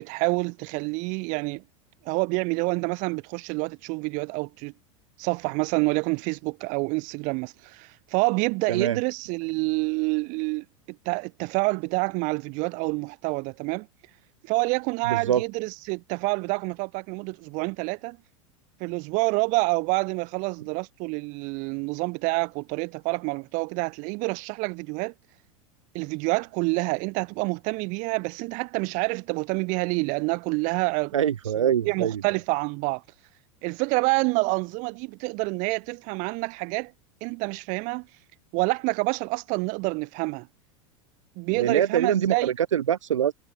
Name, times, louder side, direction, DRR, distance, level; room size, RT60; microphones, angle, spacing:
voice 1, 0.0-1.6 2.0-4.7 5.2-13.9 14.4-18.2 18.8-25.1 25.9-31.1 31.8-33.0 33.6-36.9 37.2-38.1 38.5-40.5 41.4-42.5, right 29 dB, 55° right, 1.2 m, -27 dB
voice 2, 15.1-15.4 31.1-32.2 41.6-43.3, right 9 dB, 85° right, 1.0 m, -24 dB
hypercardioid pair, 90°, 16 cm